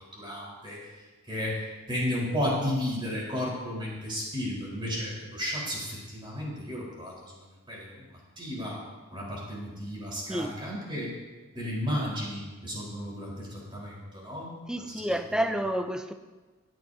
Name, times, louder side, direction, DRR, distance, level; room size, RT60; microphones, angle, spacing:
voice 1, 0.1-0.9 1.3-7.1 7.7-8.0 8.4-8.8 9.1-11.1 11.5-14.6 14.9-15.0, equal, 25° right, -5 dB, 4.2 m, -33 dB
voice 2, 14.7-16.1, right 1 dB, 5° right, 7 dB, 0.6 m, -29 dB
21.0 x 9.3 x 2.8 m, 1.3 s
head